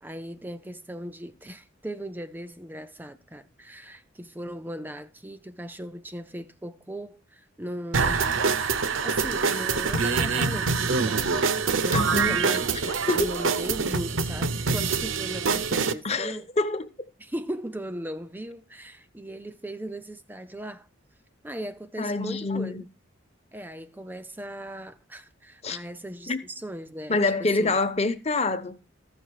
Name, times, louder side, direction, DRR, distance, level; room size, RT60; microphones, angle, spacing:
voice 1, 0.0-8.4 8.8-16.5 17.2-20.9 21.4-22.9 23.5-27.8, right 1 dB, 10° right, 0.4 m, -38 dB
sound 1, 7.9-15.9, right 4 dB, 75° right, 0.8 m, -25 dB
voice 2, 11.9-12.4 12.9-13.3 16.0-16.8 22.0-22.8 25.6-25.8 26.3-26.4 27.1-28.8, left 3 dB, 30° left, 0.9 m, -26 dB
14.5 x 6.5 x 4.7 m
head